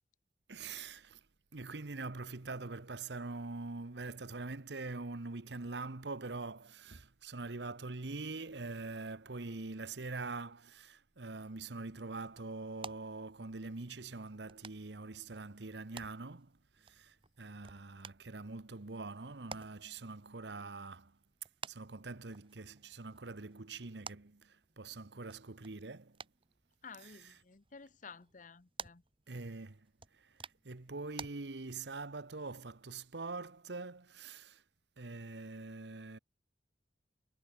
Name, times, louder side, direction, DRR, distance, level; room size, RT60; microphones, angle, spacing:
voice 1, 0.5-1.2 1.5-21.2 21.6-26.2 27.0-27.4 29.3-29.9 30.1-34.6 35.0-36.2, right 3 dB, 80° right, 1.2 m, -44 dB
sound 1, 11.5-31.3, right 5 dB, 30° right, 2.1 m, -54 dB
voice 2, 26.8-29.0, left 5 dB, 45° left, 0.9 m, -53 dB
head